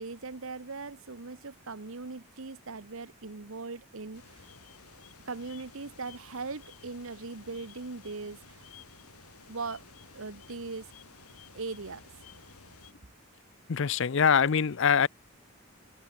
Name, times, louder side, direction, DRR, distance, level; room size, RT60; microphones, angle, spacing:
voice 1, 0.0-4.4 5.3-8.6 9.5-9.8 10.1-10.9 11.5-12.0, right 3 dB, 65° right, 1.1 m, -40 dB
sound 1, 4.1-12.9, left 5 dB, 85° left, 6.2 m, -54 dB
voice 2, 13.7-15.1, left 6 dB, 55° left, 0.5 m, -23 dB
head